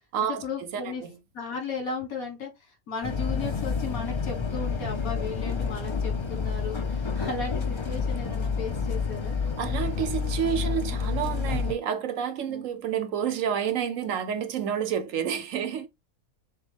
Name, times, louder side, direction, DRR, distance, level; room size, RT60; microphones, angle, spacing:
voice 1, 0.2-1.0 1.3-9.4 12.5-12.6, left 4 dB, 75° left, 1.8 m, -35 dB
voice 2, 0.7-1.2 9.6-15.9, right 8 dB, 70° right, 1.0 m, -29 dB
sound 1, 3.0-11.7, left 5 dB, 40° left, 0.4 m, -29 dB
6.7 x 2.3 x 3.3 m
omnidirectional pair, 1.5 m